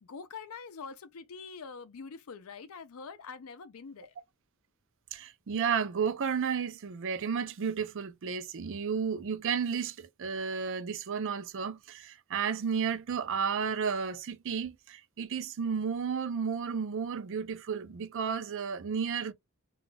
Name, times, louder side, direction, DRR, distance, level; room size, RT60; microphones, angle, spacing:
voice 1, 0.0-4.1, left 5 dB, 70° left, 0.5 m, -45 dB
voice 2, 5.1-19.3, right 6 dB, 60° right, 0.4 m, -32 dB
2.3 x 2.3 x 3.9 m
head